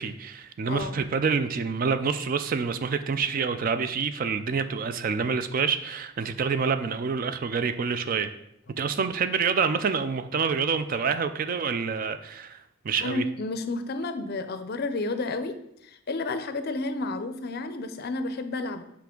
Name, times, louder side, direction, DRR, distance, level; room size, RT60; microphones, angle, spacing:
voice 1, 0.0-8.3 8.8-13.2, right 5 dB, 40° right, 11 dB, 0.3 m, -27 dB
voice 2, 0.7-1.0 13.0-18.8, left 2 dB, 45° left, 10 dB, 0.5 m, -31 dB
5.8 x 4.9 x 3.7 m, 0.77 s
head